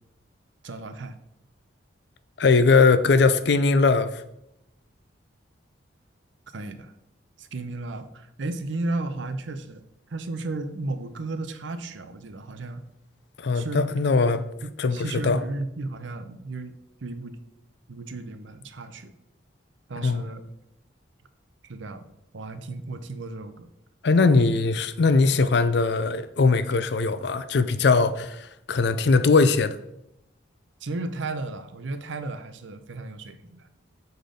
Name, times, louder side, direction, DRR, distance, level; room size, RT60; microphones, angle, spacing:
voice 1, 0.6-1.2 6.5-6.9 7.4-9.8 10.1-12.8 13.5-13.8 14.6-16.8 17.0-17.4 17.9-19.1 19.9-20.4 21.7-22.1 22.3-23.7 30.8-33.7, right 2 dB, 75° right, 0.6 m, -34 dB
voice 2, 2.4-4.2 13.4-14.4 14.8-15.4 20.0-20.2 24.0-29.8, left 4 dB, 60° left, 0.4 m, -20 dB
6.7 x 4.0 x 5.1 m
head